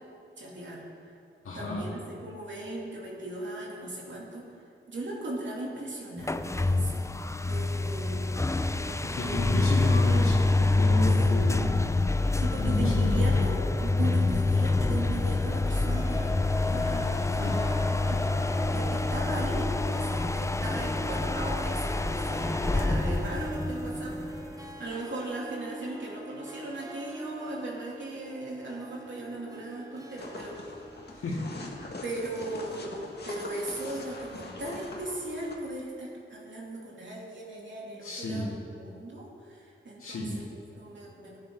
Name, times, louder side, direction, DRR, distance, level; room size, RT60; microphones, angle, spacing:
voice 1, 0.4-1.2 1.5-4.5 4.9-8.4 8.8-9.8 11.1-11.3 12.3-30.7 32.0-41.4, right 2 dB, 60° right, -4 dB, 3.0 m, -38 dB
voice 2, 1.4-1.8 9.2-11.7 12.6-13.4 17.4-17.6 31.1-31.4 38.0-38.5 40.0-40.3, left 1 dB, 90° left, -5 dB, 2.0 m, -32 dB
sound 1, 6.2-24.7, left 2 dB, 15° left, 0.5 m, -26 dB
Harp, 15.7-32.2, right 1 dB, 15° right, 1.4 m, -42 dB
sound 2, 30.2-35.5, left 2 dB, 50° left, 1.9 m, -42 dB
16.0 x 9.6 x 3.9 m, 2.5 s
cardioid pair, 65°, 21 cm